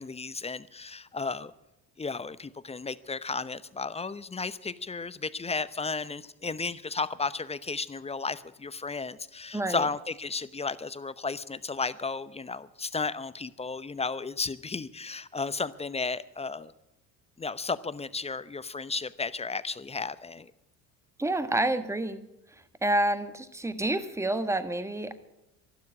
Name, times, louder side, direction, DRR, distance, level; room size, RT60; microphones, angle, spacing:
voice 1, 0.0-1.5 2.0-16.7 17.4-20.5, left 4 dB, 15° left, 16 dB, 0.7 m, -34 dB
voice 2, 9.5-9.9 21.2-22.3 22.8-25.1, right 1 dB, 5° right, 12 dB, 1.4 m, -28 dB
12.5 x 12.0 x 9.5 m, 0.90 s
hypercardioid pair, 65°, 48 cm